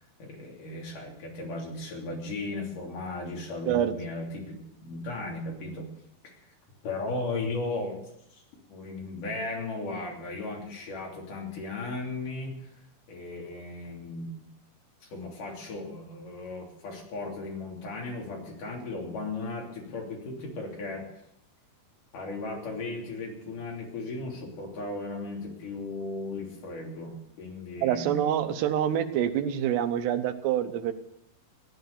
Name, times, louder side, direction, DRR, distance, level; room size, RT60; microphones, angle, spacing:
voice 1, 0.2-5.9 6.2-6.4 6.8-8.0 8.3-8.4 8.7-12.6 13.1-14.5 15.0-21.1 22.1-28.5, left 2 dB, 55° left, -1 dB, 4.5 m, -36 dB
voice 2, 27.8-30.9, right 10 dB, 85° right, 9 dB, 3.1 m, -26 dB
15.5 x 10.5 x 6.8 m, 0.78 s
omnidirectional pair, 4.7 m